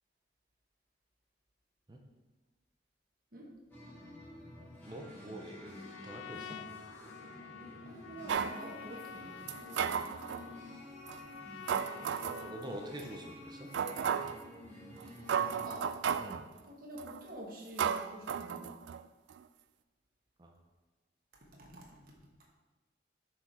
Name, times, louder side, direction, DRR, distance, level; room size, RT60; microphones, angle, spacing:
sound 1, 3.7-15.6, left 1 dB, 10° left, 1.9 m, -51 dB
voice 1, 4.8-6.6 9.7-10.5 12.4-13.7 16.2-16.5 20.4-20.6, right 1 dB, 25° right, 2 dB, 0.6 m, -46 dB
Trumpet, 5.6-13.0, left 7 dB, 85° left, 0.3 m, -49 dB
voice 2, 7.8-9.4 15.6-16.0 16.6-18.7 21.6-22.1, right 1 dB, 50° right, -2 dB, 1.3 m, -47 dB
sound 2, 8.3-8.6 9.5-10.4 11.1-11.2 11.7-12.5 13.0-13.1 13.7-14.4 15.0-15.1 15.3-16.4 17.0-17.2 17.8-19.0 19.3-19.4, right 7 dB, 75° right, 0.3 m, -34 dB
6.8 x 4.8 x 4.7 m, 1.2 s
head